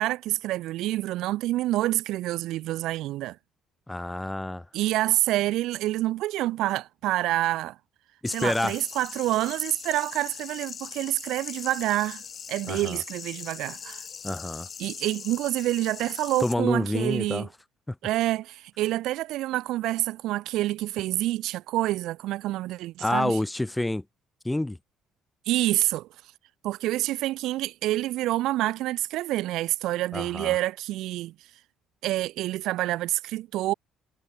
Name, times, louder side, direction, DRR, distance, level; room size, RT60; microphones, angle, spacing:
voice 1, 0.0-3.4 4.7-7.8 8.3-12.2 12.5-14.0 14.8-17.5 18.0-23.4 25.5-26.1 26.6-31.3 32.0-33.7, right 16 dB, 75° right, 0.9 m, -27 dB
voice 2, 3.9-4.7 8.2-8.8 12.7-13.0 14.2-14.7 16.4-17.5 17.9-18.0 23.0-24.0 24.4-24.8 30.1-30.6, left 1 dB, 10° left, 5.2 m, -28 dB
sound 1, 8.2-16.5, left 7 dB, 40° left, 4.6 m, -40 dB
cardioid pair, 95°, 0 cm